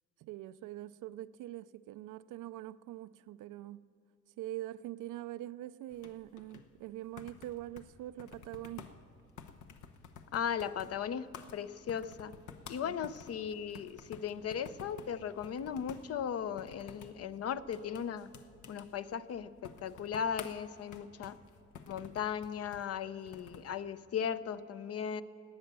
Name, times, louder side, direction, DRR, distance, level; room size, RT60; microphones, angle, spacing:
voice 1, 0.2-3.8 4.4-8.9 12.8-13.0, right 14 dB, 85° right, 15 dB, 0.5 m, -44 dB
sound 1, 5.9-23.7, left 6 dB, 80° left, 1.0 m, -53 dB
voice 2, 10.3-11.3 11.5-12.3 12.7-18.3 18.7-21.4 21.9-25.2, left 8 dB, 55° left, 14 dB, 0.6 m, -37 dB
17.5 x 9.3 x 6.8 m, 2.5 s
cardioid pair, 90°, 30 cm